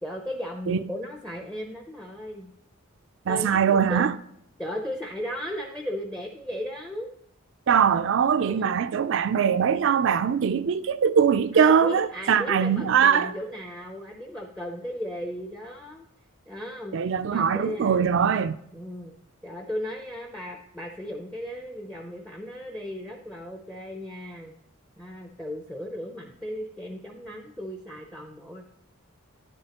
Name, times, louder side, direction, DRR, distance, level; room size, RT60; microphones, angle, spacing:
voice 1, 0.0-2.5 3.3-4.0 4.6-7.1 8.4-8.8 11.5-16.1 16.5-18.1 18.7-19.1 19.4-24.6 25.0-28.6, equal, 5° left, 0.5 m, -36 dB
voice 2, 3.3-4.1 7.7-13.3 16.9-18.6, right 7 dB, 60° right, 0.3 m, -22 dB
10.5 x 8.7 x 2.9 m
head